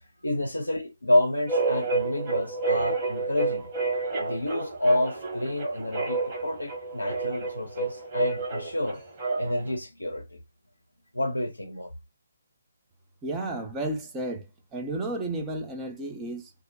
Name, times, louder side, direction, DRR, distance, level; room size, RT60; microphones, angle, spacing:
voice 1, 0.2-3.7 4.2-9.0 9.4-10.4 11.1-11.9, left 1 dB, 80° left, 0.5 m, -28 dB
sound 1, 1.5-9.7, right 3 dB, 30° right, 1.3 m, -30 dB
voice 2, 13.2-14.4 14.7-16.5, right 2 dB, 10° right, 0.5 m, -32 dB
2.3 x 2.1 x 2.8 m
figure-of-eight pair, 140°, 0 cm